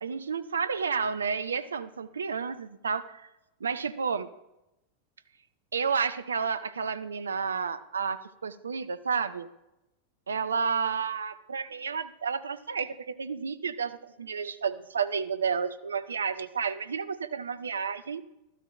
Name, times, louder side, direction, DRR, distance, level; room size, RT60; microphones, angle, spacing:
voice 1, 0.0-3.3 3.6-4.3 5.7-9.5 10.3-18.2, right 6 dB, 70° right, 13 dB, 0.5 m, -31 dB
12.5 x 12.5 x 2.5 m, 0.91 s
figure-of-eight pair, 90°, 0 cm